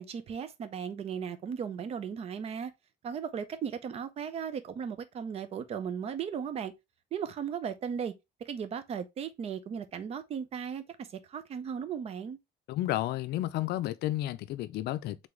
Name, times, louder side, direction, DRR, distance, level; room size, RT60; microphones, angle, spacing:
voice 1, 0.0-2.7 3.0-6.7 7.1-8.1 8.4-12.4, right 7 dB, 35° right, 0.5 m, -36 dB
voice 2, 12.7-15.3, left 14 dB, 70° left, 0.4 m, -32 dB
3.9 x 3.4 x 3.1 m
cardioid pair, 165°, 18 cm